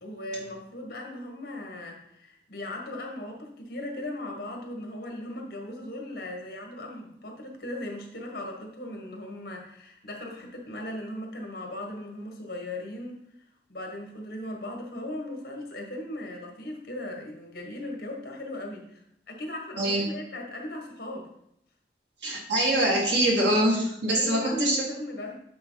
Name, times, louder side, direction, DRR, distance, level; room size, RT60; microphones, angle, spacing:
voice 1, 0.0-13.2 13.7-19.0 19.3-21.3 24.1-25.4, left 1 dB, 55° left, 1 dB, 1.5 m, -38 dB
voice 2, 22.2-24.8, right 1 dB, 75° right, -2 dB, 2.1 m, -24 dB
8.7 x 4.1 x 4.0 m, 0.76 s
head